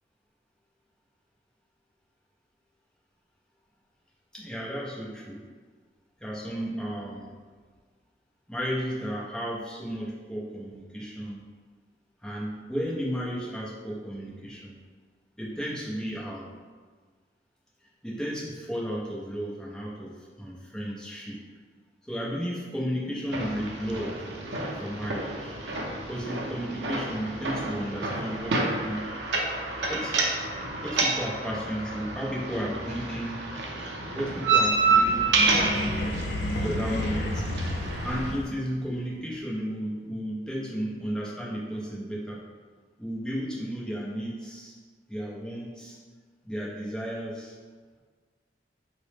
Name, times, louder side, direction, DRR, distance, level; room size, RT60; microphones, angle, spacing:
voice 1, 4.3-5.4 6.2-7.3 8.5-11.4 12.2-14.8 15.4-16.5 18.0-21.4 22.1-24.2 24.8-25.6 26.0-29.1 29.9-30.2 30.8-33.4 34.1-35.3 36.5-37.5 38.0-42.4 43.0-44.8 45.1-46.0 46.4-47.5, equal, 5° left, -5 dB, 0.5 m, -33 dB
sound 1, 23.3-38.3, right 3 dB, 80° right, 0.5 m, -29 dB
sound 2, 34.5-38.8, left 1 dB, 70° left, 0.4 m, -31 dB
3.7 x 2.0 x 3.2 m, 1.5 s
head